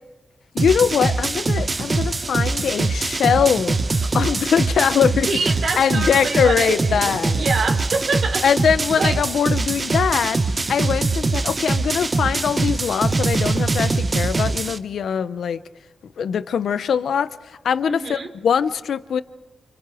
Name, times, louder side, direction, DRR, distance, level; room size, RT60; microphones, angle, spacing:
voice 1, 0.5-5.3 5.8-7.4 8.4-10.4 10.7-15.6 16.2-17.3 17.6-19.2, left 7 dB, 80° left, 0.7 m, -21 dB
sound 1, 0.6-14.8, right 3 dB, 35° right, 1.0 m, -23 dB
voice 2, 5.3-8.4 9.0-9.2 17.9-18.3, right 4 dB, 65° right, 3.7 m, -25 dB
29.5 x 28.0 x 5.0 m
wide cardioid pair, 110°, 0 cm